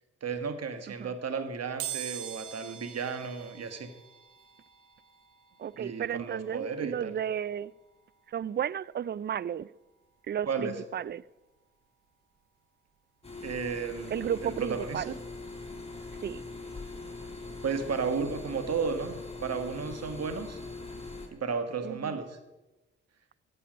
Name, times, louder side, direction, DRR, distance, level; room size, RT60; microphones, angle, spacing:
voice 1, 0.2-3.9 5.8-7.1 10.5-10.8 13.4-15.0 17.6-20.6 21.3-22.4, right 5 dB, 55° right, 1.7 m, -33 dB
sound 1, 1.8-12.5 12.9-13.0 14.2-14.3 14.6-16.7 17.0-19.6 20.0-20.2 20.5-20.6, right 11 dB, 80° right, 1.3 m, -46 dB
voice 2, 5.6-7.7 8.3-9.7 10.3-11.2 14.1-15.1 16.2-16.4 21.8-22.2, right 9 dB, 35° right, 0.4 m, -33 dB
sound 2, 13.2-21.3, left 3 dB, 20° left, 3.6 m, -42 dB
14.5 x 8.5 x 5.4 m
hypercardioid pair, 45°, 30 cm